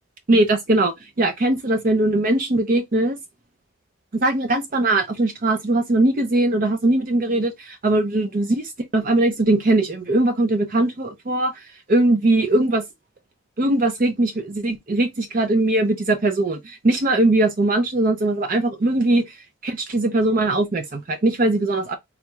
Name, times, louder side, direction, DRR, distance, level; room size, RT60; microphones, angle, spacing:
voice 1, 0.3-3.2 4.1-11.5 11.9-12.8 13.6-19.2 19.6-21.9, right 2 dB, 45° right, 0.5 m, -20 dB
3.5 x 2.3 x 2.9 m
head